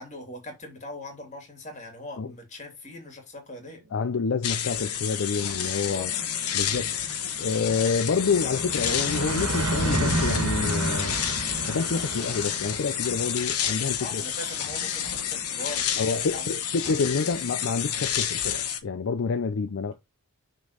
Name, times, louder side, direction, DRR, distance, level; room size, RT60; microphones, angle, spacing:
voice 1, 0.0-3.8 5.8-6.2 14.0-16.5 16.9-17.1, left 1 dB, 35° left, 2.6 m, -41 dB
voice 2, 3.9-6.1 6.5-7.0 7.4-11.2 11.7-14.2 16.0-19.9, left 5 dB, 60° left, 0.5 m, -28 dB
sound 1, 4.4-18.8, left 9 dB, 90° left, 1.2 m, -30 dB
sound 2, 4.6-4.7 4.9-16.4, right 2 dB, 80° right, 1.4 m, -32 dB
6.2 x 3.9 x 5.0 m
head